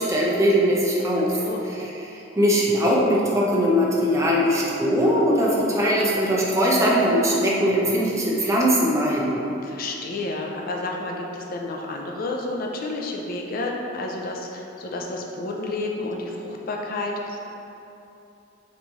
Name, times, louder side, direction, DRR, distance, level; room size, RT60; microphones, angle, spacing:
voice 1, 0.0-1.4 1.7-9.4, equal, 15° right, -5 dB, 0.5 m, -21 dB
voice 2, 9.6-17.4, left 2 dB, 50° left, 0 dB, 0.4 m, -30 dB
3.9 x 3.1 x 3.5 m, 2.9 s
head